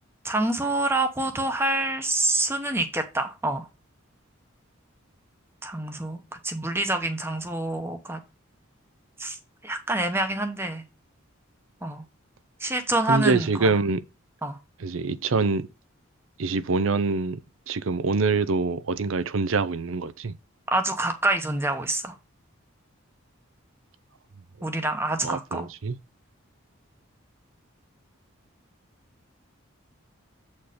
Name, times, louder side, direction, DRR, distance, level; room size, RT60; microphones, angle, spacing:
voice 1, 0.2-3.7 5.6-8.2 9.2-9.4 9.6-10.8 11.8-12.0 12.6-13.7 14.4-14.6 20.7-22.1 24.6-25.7, right 2 dB, 10° right, 0.9 m, -27 dB
voice 2, 13.1-14.0 14.8-15.7 16.4-17.4 17.7-20.4 25.2-26.0, right 4 dB, 70° right, 0.6 m, -25 dB
7.9 x 4.3 x 5.0 m
head